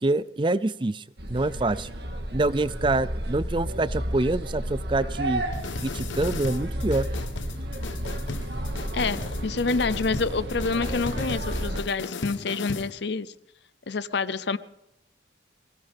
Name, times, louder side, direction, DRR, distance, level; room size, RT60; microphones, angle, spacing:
voice 1, 0.0-1.9 2.3-5.4 5.8-7.1, right 2 dB, 25° right, 17 dB, 0.5 m, -26 dB
sound 1, 1.2-11.8, right 1 dB, 55° right, 1.9 m, -32 dB
sound 2, 5.5-12.9, left 3 dB, 80° left, 1.1 m, -36 dB
voice 2, 8.9-13.3 13.9-14.6, left 4 dB, 65° left, 16 dB, 0.6 m, -27 dB
23.0 x 17.5 x 3.6 m, 0.84 s
head